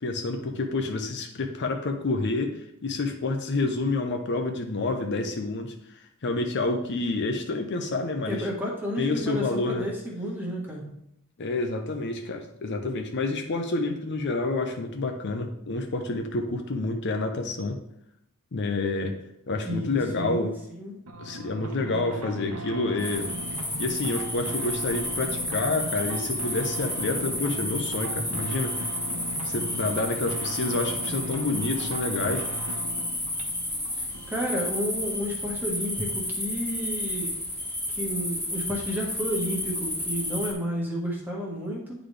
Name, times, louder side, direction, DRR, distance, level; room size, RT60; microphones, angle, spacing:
voice 1, 0.0-2.5 2.8-8.5 9.0-9.9 11.4-17.8 18.5-19.1 19.5-20.5 21.2-23.3 23.8-28.7 29.4-32.5, left 3 dB, 55° left, 5 dB, 0.6 m, -28 dB
voice 2, 8.2-10.8 19.6-20.9 33.9-37.4 37.9-41.9, equal, 10° right, -3 dB, 1.4 m, -31 dB
sound 1, 21.1-35.2, right 1 dB, 85° right, 0.9 m, -38 dB
sound 2, 23.0-40.5, left 1 dB, 5° left, 1.5 m, -31 dB
9.6 x 4.0 x 3.3 m, 0.80 s
head